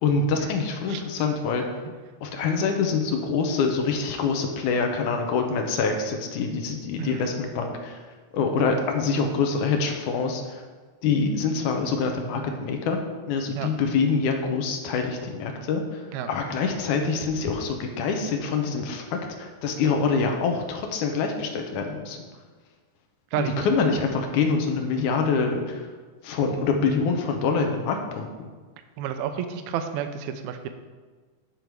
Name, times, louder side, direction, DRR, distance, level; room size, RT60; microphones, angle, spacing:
voice 1, 0.0-1.6 2.2-8.0 8.3-10.4 11.0-13.0 13.3-15.8 16.3-19.0 19.4-22.2 23.4-25.8 26.2-28.5, left 5 dB, 75° left, 4 dB, 2.2 m, -25 dB
voice 2, 7.0-7.3 13.6-13.7 16.1-16.3 23.3-23.7 29.0-30.7, right 8 dB, 80° right, 8 dB, 1.8 m, -30 dB
10.0 x 5.3 x 4.6 m, 1.4 s
omnidirectional pair, 3.8 m